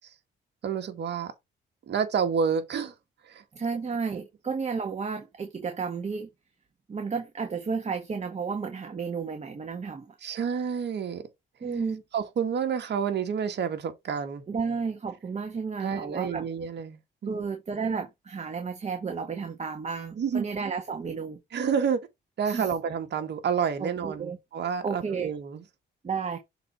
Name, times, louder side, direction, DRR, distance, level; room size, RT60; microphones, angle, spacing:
voice 1, 0.6-1.3 1.9-2.9 3.2-3.4 10.2-11.2 12.1-14.6 15.8-17.5 20.1-20.5 21.5-22.0 22.4-25.6, right 7 dB, 60° right, 1.8 m, -29 dB
voice 2, 3.5-6.3 6.9-10.2 11.6-12.0 14.5-16.4 17.3-21.4 22.5-22.7 23.8-24.4 24.8-25.3 26.0-26.4, right 5 dB, 35° right, 1.4 m, -32 dB
6.6 x 4.1 x 4.2 m
cardioid pair, 90°, 20 cm